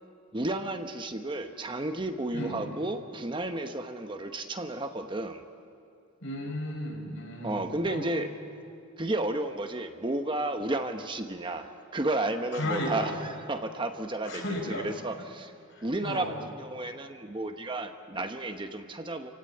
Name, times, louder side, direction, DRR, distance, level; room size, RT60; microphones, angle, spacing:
voice 1, 0.3-5.4 7.4-8.3 9.0-15.5 15.8-19.3, right 2 dB, 25° right, 7 dB, 1.0 m, -32 dB
voice 2, 2.3-2.6 6.2-8.0 12.5-13.2 14.2-14.9 15.7-16.3, left 1 dB, 65° left, 0 dB, 6.3 m, -34 dB
29.0 x 16.5 x 9.7 m, 2.6 s
head